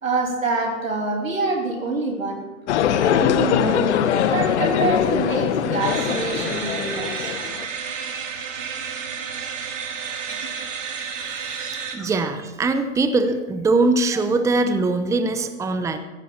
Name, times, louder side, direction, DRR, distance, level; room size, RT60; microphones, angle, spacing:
voice 1, 0.0-2.4 3.0-7.3 10.3-10.5 11.6-12.1, right 3 dB, 90° right, 2 dB, 3.1 m, -26 dB
sound 1, 2.7-7.7, left 9 dB, 60° left, 1.1 m, -22 dB
Laughter, 3.3-8.0, left 6 dB, 80° left, 1.4 m, -35 dB
sound 2, 5.8-12.0, right 6 dB, 70° right, 2.5 m, -31 dB
voice 2, 11.2-16.0, right 3 dB, 10° right, 9 dB, 0.8 m, -22 dB
15.5 x 14.5 x 4.3 m, 1.2 s
hypercardioid pair, 110°, 39 cm